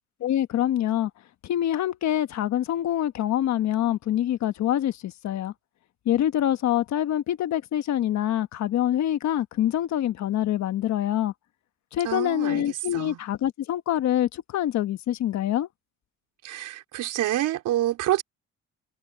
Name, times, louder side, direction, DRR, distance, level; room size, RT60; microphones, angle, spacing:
voice 1, 0.2-1.1 1.5-5.5 6.1-11.3 11.9-15.7, left 11 dB, 65° left, 1.3 m, -25 dB
voice 2, 12.0-13.2 16.4-18.2, right 14 dB, 80° right, 4.4 m, -27 dB
cardioid pair, 135°, 30 cm